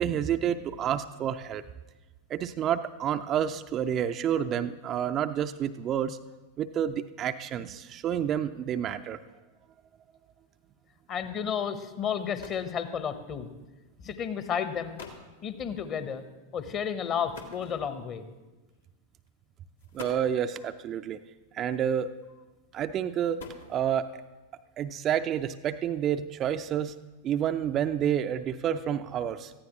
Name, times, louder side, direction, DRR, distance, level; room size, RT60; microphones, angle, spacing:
voice 1, 0.0-1.6 2.3-6.2 6.6-9.2 19.9-21.2 21.5-22.1 22.7-23.4 23.7-24.1 24.8-26.9 27.2-29.5, right 9 dB, 30° right, 8 dB, 0.5 m, -29 dB
voice 2, 11.1-13.5 14.0-15.0 15.4-16.2 16.5-18.3, left 7 dB, 30° left, 10 dB, 1.1 m, -32 dB
sound 1, 12.2-12.8 13.8-14.0 14.6-14.7 15.0-15.3 17.3-18.2 19.1-19.3 19.8-20.5 21.7-22.2 23.0-24.1, left 4 dB, 75° left, 1.9 m, -46 dB
18.5 x 14.5 x 3.1 m, 1.2 s
figure-of-eight pair, 90°, 0 cm